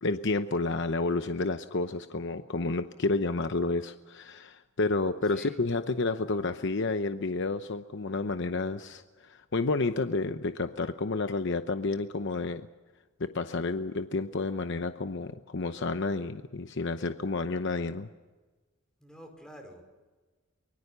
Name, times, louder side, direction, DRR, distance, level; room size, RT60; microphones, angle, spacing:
voice 1, 0.0-12.6 13.2-18.1, left 3 dB, 60° left, 9 dB, 0.8 m, -30 dB
voice 2, 19.0-19.8, equal, 5° left, 4 dB, 5.0 m, -48 dB
24.0 x 22.5 x 6.8 m, 1.3 s
head